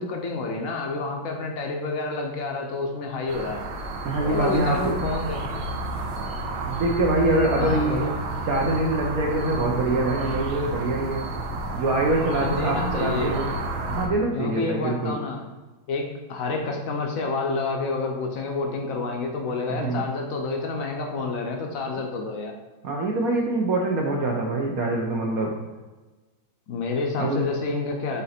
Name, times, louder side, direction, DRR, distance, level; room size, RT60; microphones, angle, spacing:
voice 1, 0.0-3.6 4.2-5.4 7.6-8.1 12.4-13.3 14.3-15.4 15.9-22.5 26.7-28.2, left 3 dB, 60° left, 2 dB, 0.9 m, -29 dB
sound 1, 3.3-14.1, right 2 dB, 85° right, 1.6 m, -31 dB
voice 2, 4.0-4.8 6.7-8.1 8.5-11.2 11.7-13.5 13.9-15.2 19.7-20.0 22.8-25.5 27.2-27.4, right 2 dB, 65° right, 0 dB, 0.9 m, -24 dB
5.7 x 3.8 x 4.2 m, 1.2 s
omnidirectional pair, 2.1 m